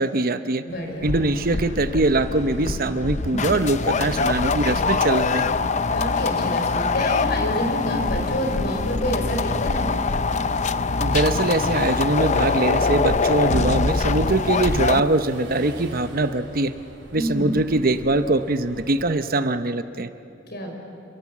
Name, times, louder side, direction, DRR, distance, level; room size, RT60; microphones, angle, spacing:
voice 1, 0.0-0.6 1.0-5.5 11.0-16.7 17.1-20.1, right 2 dB, 50° right, 10 dB, 0.8 m, -22 dB
voice 2, 0.6-1.1 5.9-9.9 17.1-17.5 20.5-20.7, equal, 55° left, 3 dB, 5.3 m, -28 dB
sound 1, 0.7-19.1, right 1 dB, 70° right, 4.4 m, -45 dB
war zone battle clip sample by kris, 1.0-15.0, left 4 dB, 40° left, 0.6 m, -23 dB
29.5 x 23.0 x 7.4 m, 2.7 s
head